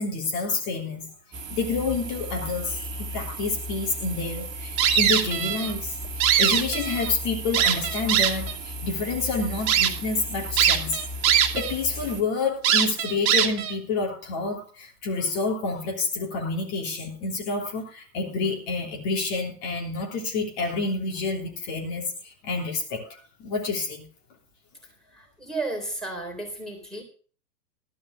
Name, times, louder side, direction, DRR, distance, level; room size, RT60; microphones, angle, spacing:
voice 1, 0.0-6.0 6.4-11.0 11.5-24.0, left 3 dB, 45° left, 1 dB, 3.1 m, -28 dB
sound 1, 1.3-12.2, right 1 dB, 20° right, 2.2 m, -36 dB
sound 2, 4.8-5.7 6.0-7.1 7.5-8.5 9.1-9.2 9.7-9.9 10.6-11.7 12.0-12.1 12.6-13.7, right 9 dB, 40° right, 1.8 m, -21 dB
voice 2, 25.1-27.0, right 2 dB, ahead, 1 dB, 3.7 m, -33 dB
13.0 x 5.3 x 8.2 m, 0.41 s
hypercardioid pair, 115°, 50 cm